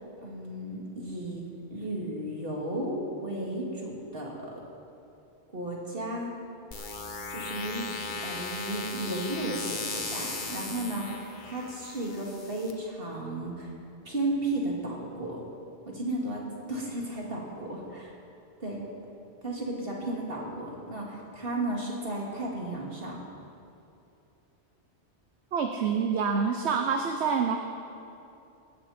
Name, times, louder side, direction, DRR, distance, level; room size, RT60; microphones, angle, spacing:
voice 1, 0.2-1.4 1.7-4.5 5.5-6.3 7.3-7.9 8.2-13.7 14.0-15.4 15.9-18.1 18.6-18.8 19.4-23.2, right 1 dB, 55° right, -3 dB, 2.9 m, -34 dB
sound 1, 6.7-12.7, left 3 dB, 45° left, 1.3 m, -37 dB
voice 2, 25.5-27.6, right 6 dB, 70° right, 5 dB, 1.1 m, -27 dB
19.0 x 14.5 x 4.4 m, 2.7 s
omnidirectional pair, 1.2 m